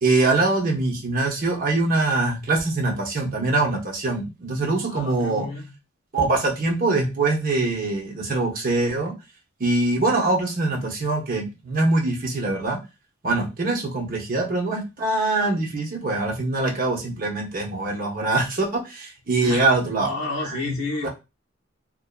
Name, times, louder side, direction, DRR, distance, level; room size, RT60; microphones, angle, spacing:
voice 1, 0.0-5.5 6.1-9.1 9.6-12.8 13.2-20.1 20.5-21.1, right 2 dB, 45° right, 1 dB, 0.7 m, -23 dB
voice 2, 4.9-5.7 19.4-19.7 20.0-21.1, left 3 dB, 80° left, -1 dB, 0.5 m, -31 dB
2.5 x 2.1 x 2.3 m, 0.25 s
head